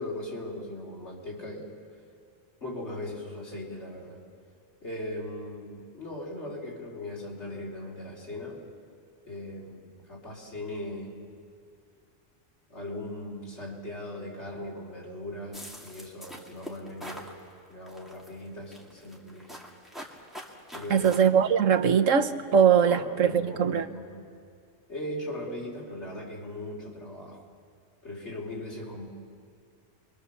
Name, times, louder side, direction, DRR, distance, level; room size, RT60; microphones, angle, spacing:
voice 1, 0.0-1.7 2.6-4.2 4.8-8.6 9.2-11.2 12.7-17.4 17.7-19.6 20.7-21.1 22.8-24.2 24.9-27.4 28.0-29.1, left 1 dB, 60° left, -2 dB, 4.3 m, -39 dB
sound 1, 15.5-17.3 17.9-18.3 18.7-21.2, equal, ahead, 2.5 m, -43 dB
voice 2, 20.9-23.9, right 7 dB, 85° right, 8 dB, 1.4 m, -21 dB
29.0 x 23.5 x 7.1 m, 2.3 s
omnidirectional pair, 1.3 m